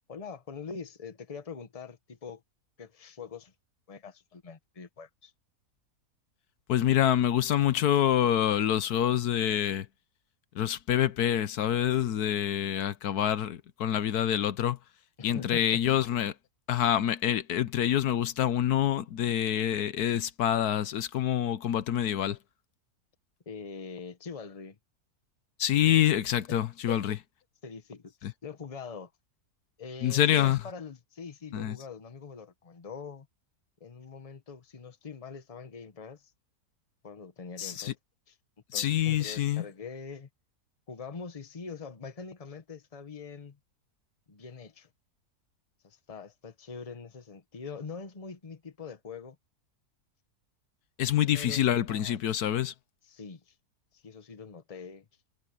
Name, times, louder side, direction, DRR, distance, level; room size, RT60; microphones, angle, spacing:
voice 1, 0.1-2.4 2.8-3.5 3.9-5.3 15.2-15.8 23.5-24.8 26.5-26.6 26.9-27.0 27.6-29.1 29.8-33.3 33.8-36.2 37.0-37.9 38.3-38.4 38.7-40.3 40.9-43.6 44.3-44.9 45.8-49.4 51.3-52.2 53.0-53.5 53.9-55.1, left 5 dB, 25° left, 1.1 m, -43 dB
voice 2, 6.7-9.9 10.5-14.8 15.2-16.3 16.7-22.4 25.6-27.2 28.2-28.3 30.0-30.6 31.5-31.8 37.6-37.9 38.7-39.6 51.0-52.7, left 11 dB, 80° left, 1.3 m, -26 dB
omnidirectional pair, 1.7 m